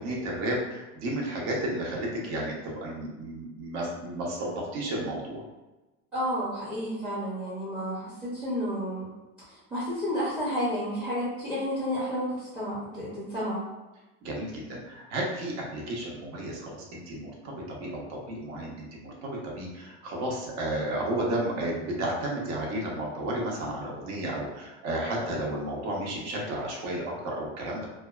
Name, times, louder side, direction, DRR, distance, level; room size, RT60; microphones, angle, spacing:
voice 1, 0.0-5.4 14.2-27.9, right 1 dB, 50° right, -2 dB, 0.8 m, -32 dB
voice 2, 6.1-9.1 9.5-13.6, equal, 5° right, -8 dB, 0.6 m, -31 dB
2.6 x 2.2 x 2.3 m, 1.1 s
supercardioid pair, 150°, 36 cm